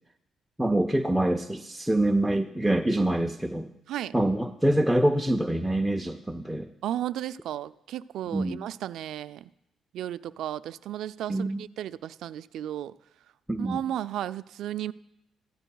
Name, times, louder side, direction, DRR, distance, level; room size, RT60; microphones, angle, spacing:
voice 1, 0.6-3.7 4.1-6.7 8.3-8.6 11.3-11.6 13.5-13.8, right 1 dB, 5° right, 4 dB, 0.5 m, -25 dB
voice 2, 6.8-9.5 9.9-12.9 13.6-14.9, right 11 dB, 80° right, 15 dB, 0.3 m, -34 dB
15.0 x 13.0 x 2.3 m, 0.86 s
cardioid pair, 90°, 0 cm